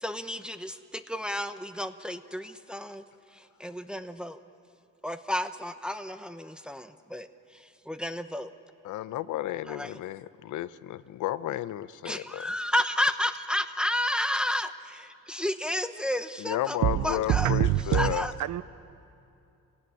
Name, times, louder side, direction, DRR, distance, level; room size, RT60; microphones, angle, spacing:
voice 1, 0.0-3.0 3.6-4.4 5.0-7.3 7.9-8.5 9.7-9.9 12.0-16.8 17.0-17.5 17.9-18.3, left 1 dB, 5° right, 0.9 m, -31 dB
voice 2, 8.8-12.5 16.4-18.3, left 13 dB, 80° left, 0.7 m, -32 dB
voice 3, 16.8-18.1 18.4-18.6, right 13 dB, 75° right, 0.7 m, -25 dB
27.0 x 17.0 x 8.5 m
cardioid pair, 90°, 30 cm